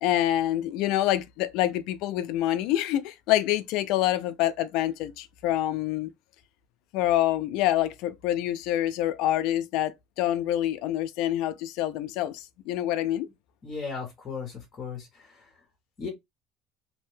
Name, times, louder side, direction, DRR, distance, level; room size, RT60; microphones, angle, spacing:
voice 1, 0.0-6.1 6.9-13.3, left 13 dB, 60° left, 0.3 m, -26 dB
voice 2, 13.6-15.5 16.0-16.1, left 5 dB, 25° left, 0.7 m, -36 dB
2.6 x 2.1 x 3.1 m
cardioid pair, 170°, 0 cm